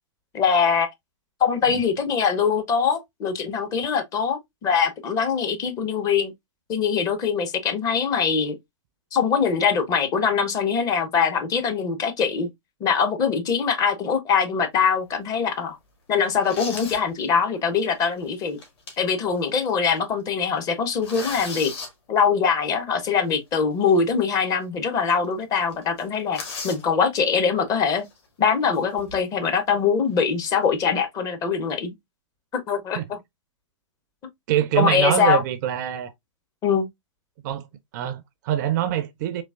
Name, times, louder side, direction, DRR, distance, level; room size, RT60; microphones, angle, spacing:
voice 1, 0.3-0.9 1.4-6.3 6.7-8.5 9.1-12.5 12.8-15.8 16.1-18.6 19.0-21.7 22.1-28.0 28.4-31.9 32.5-33.2 34.8-35.4 36.6-36.9, left 6 dB, 20° left, 0.7 m, -23 dB
sound 1, 14.9-15.1 15.7-15.8 16.3-17.1 17.5-17.6 18.4-19.2 19.6-19.7 20.0-20.2 20.6-21.9 23.9-24.0 24.5-24.6 24.9-25.0 25.2-25.4 25.7-26.9 27.9-28.2 28.7-29.4, left 4 dB, 50° left, 1.9 m, -36 dB
voice 2, 34.5-36.1 37.4-37.7 37.9-39.4, right 11 dB, 35° right, 0.4 m, -24 dB
3.8 x 3.0 x 2.4 m
figure-of-eight pair, 115°, 17 cm